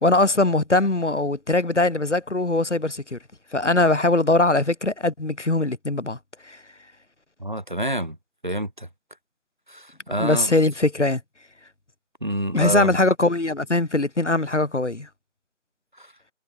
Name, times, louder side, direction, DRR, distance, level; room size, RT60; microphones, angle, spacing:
voice 1, 0.0-3.2 3.5-6.2 6.4-6.6 10.2-11.2 12.5-15.1, left 2 dB, 65° left, 1.6 m, -21 dB
voice 2, 7.4-8.2 8.4-8.9 9.7-10.5 12.2-12.9 16.0-16.1, right 1 dB, 40° right, 1.7 m, -27 dB
figure-of-eight pair, 175°, 38 cm